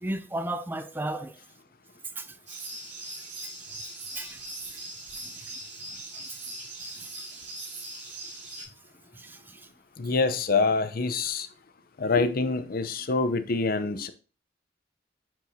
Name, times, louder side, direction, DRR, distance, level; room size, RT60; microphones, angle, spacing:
voice 1, 0.0-1.4 2.2-2.4 3.7-3.8 4.1-4.4 5.2-5.6 5.9-6.4 6.8-7.2 9.1-9.7, right 1 dB, 10° right, 0.4 m, -36 dB
sound 1, 2.5-8.6, right 2 dB, 40° right, 3.6 m, -40 dB
voice 2, 10.0-11.5 12.0-14.1, left 4 dB, 50° left, 0.6 m, -26 dB
9.6 x 4.6 x 2.7 m
head